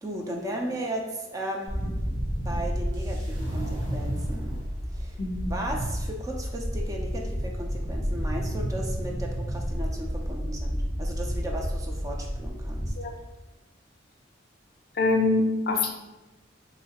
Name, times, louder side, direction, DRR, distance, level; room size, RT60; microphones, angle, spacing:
voice 1, 0.0-2.0 2.5-4.6 4.9-12.9, right 1 dB, 20° right, 1 dB, 0.3 m, -36 dB
sound 1, 1.7-12.9, equal, 65° right, 1.1 m, -31 dB
sound 2, 2.9-4.9, right 1 dB, 85° right, 1.3 m, -41 dB
voice 2, 5.2-5.5 13.0-13.2 15.0-15.9, left 3 dB, 55° left, 3 dB, 0.5 m, -24 dB
3.1 x 3.0 x 2.8 m, 1.1 s
head